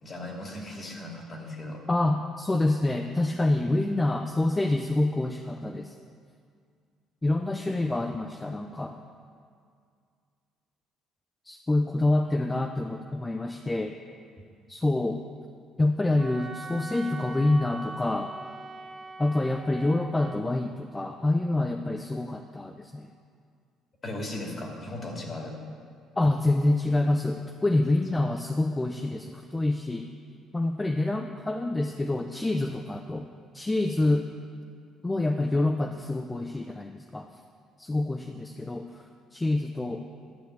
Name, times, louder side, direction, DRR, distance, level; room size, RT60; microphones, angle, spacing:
voice 1, 0.0-1.8 24.0-25.6 28.3-28.4, left 1 dB, 35° left, 0 dB, 2.4 m, -37 dB
voice 2, 1.9-5.9 7.2-9.0 11.5-13.9 14.7-15.2 15.8-18.3 19.2-23.1 26.2-30.1 30.5-33.3 33.5-34.3 35.0-37.3 37.8-39.0 39.3-40.1, left 2 dB, 15° left, 5 dB, 0.6 m, -27 dB
Wind instrument woodwind instrument, 16.2-20.4, right 2 dB, 20° right, 1.1 m, -41 dB
12.0 x 6.5 x 8.1 m, 2.2 s
cardioid pair, 100°, 0 cm